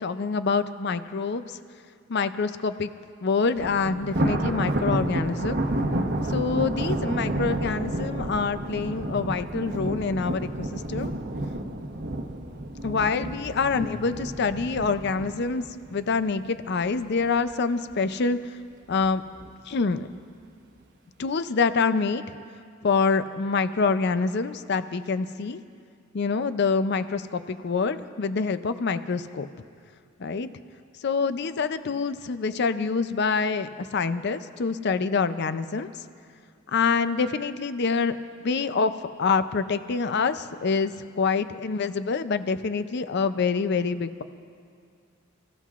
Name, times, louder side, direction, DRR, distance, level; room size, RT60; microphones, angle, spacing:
voice 1, 0.0-1.6 2.1-2.9 3.2-5.6 6.3-11.1 12.8-15.6 15.9-18.6 18.9-19.2 19.7-20.1 21.2-22.4 22.8-25.6 26.1-29.5 30.2-30.5 31.0-35.9 36.7-38.2 38.4-38.9 39.2-44.2, left 4 dB, 55° left, 12 dB, 0.5 m, -26 dB
Thunder, 3.5-16.8 17.2-17.5 17.9-18.0 18.9-19.5, right 1 dB, 55° right, 1.0 m, -30 dB
29.0 x 15.5 x 2.5 m, 2.2 s
head